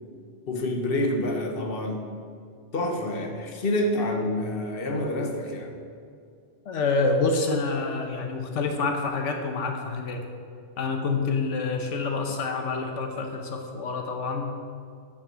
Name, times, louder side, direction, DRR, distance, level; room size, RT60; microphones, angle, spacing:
voice 1, 0.5-2.0 2.7-5.7, left 1 dB, 50° left, 3 dB, 1.4 m, -27 dB
voice 2, 6.6-10.2 10.8-14.6, left 3 dB, 85° left, 4 dB, 1.3 m, -27 dB
9.8 x 6.4 x 7.6 m, 2.3 s
omnidirectional pair, 1.2 m